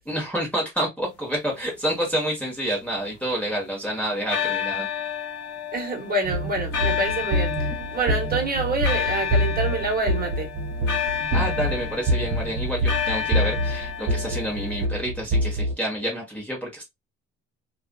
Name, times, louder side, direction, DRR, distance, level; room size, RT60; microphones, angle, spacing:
voice 1, 0.1-4.9 11.3-16.8, equal, 5° left, 1.1 m, -28 dB
sound 1, 2.3-3.7 4.3-14.9, left 8 dB, 55° left, 0.9 m, -31 dB
voice 2, 5.7-7.5 7.9-10.5, right 2 dB, 30° right, 1.3 m, -26 dB
sound 2, 6.2-15.7, equal, 45° right, 1.3 m, -26 dB
2.5 x 2.3 x 2.2 m
cardioid pair, 90°, 30 cm